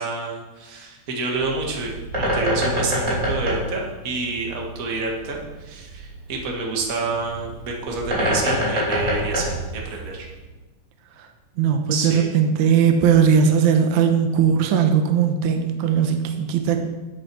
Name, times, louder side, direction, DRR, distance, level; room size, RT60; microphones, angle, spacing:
voice 1, 0.0-10.2 11.9-12.3, right 3 dB, 40° right, -1 dB, 1.3 m, -28 dB
Bird, 1.3-10.5, equal, 20° right, 2.9 m, -26 dB
voice 2, 11.6-16.8, right 7 dB, 70° right, 5 dB, 1.8 m, -18 dB
10.5 x 8.0 x 6.2 m, 1.1 s
omnidirectional pair, 4.6 m